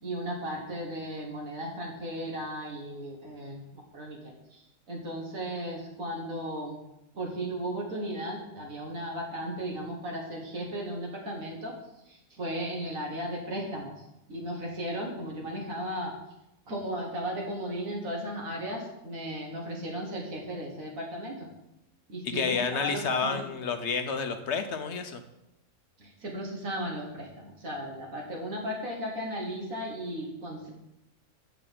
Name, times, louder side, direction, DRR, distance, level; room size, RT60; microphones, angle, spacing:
voice 1, 0.0-3.6 3.9-4.6 4.9-6.8 7.1-11.7 12.1-13.9 14.3-16.1 16.7-21.5 22.1-23.4 26.0-30.7, equal, 75° right, -2 dB, 2.0 m, -35 dB
voice 2, 22.2-25.2, left 5 dB, 60° left, 8 dB, 0.9 m, -30 dB
6.7 x 6.3 x 7.5 m, 0.87 s
omnidirectional pair, 1.5 m